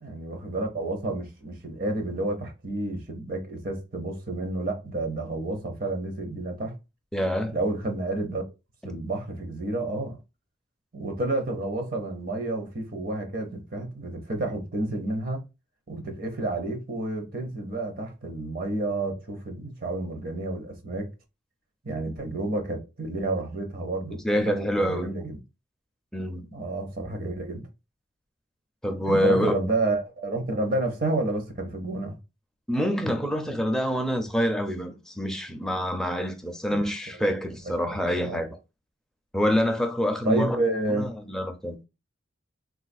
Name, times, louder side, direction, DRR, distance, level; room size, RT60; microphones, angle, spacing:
voice 1, 0.0-6.8 7.5-8.4 8.8-10.2 10.9-15.4 15.9-21.1 21.8-25.4 26.5-27.6 29.1-32.2 36.8-36.9 37.9-38.4 40.2-41.1, right 2 dB, 50° right, 0.7 m, -30 dB
voice 2, 7.1-7.5 24.2-25.1 26.1-26.5 28.8-29.6 32.7-38.5 39.3-40.6 40.9-41.8, equal, 5° left, 0.4 m, -26 dB
3.5 x 2.4 x 2.6 m
head